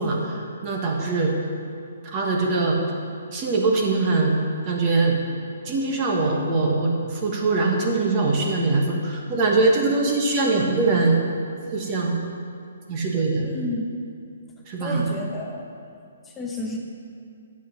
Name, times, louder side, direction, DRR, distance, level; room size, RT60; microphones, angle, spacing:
voice 1, 0.0-1.3 2.0-2.8 3.3-4.3 4.6-5.2 5.6-11.2 11.7-12.2 12.9-13.5 14.7-15.1, right 3 dB, 25° right, 0 dB, 1.4 m, -22 dB
voice 2, 13.4-13.9 14.8-15.6 16.3-16.8, left 1 dB, 5° left, -1 dB, 0.9 m, -31 dB
10.5 x 7.5 x 5.8 m, 2.4 s
hypercardioid pair, 165°, 0 cm